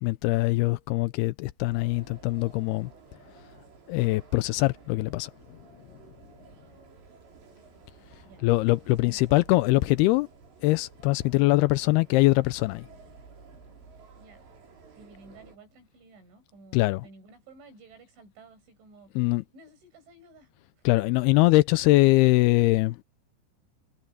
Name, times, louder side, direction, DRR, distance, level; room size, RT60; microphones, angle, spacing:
voice 1, 0.0-2.9 3.9-5.6 8.4-10.3 10.6-12.9 16.7-17.1 19.2-19.4 20.8-23.0, left 20 dB, 90° left, 2.2 m, -23 dB
sound 1, 1.6-15.6, right 4 dB, 70° right, 7.5 m, -53 dB
voice 2, 9.0-9.4 14.2-14.5 15.0-20.5 20.8-20.9, right 3 dB, 90° right, 10.5 m, -53 dB
omnidirectional pair, 5.3 m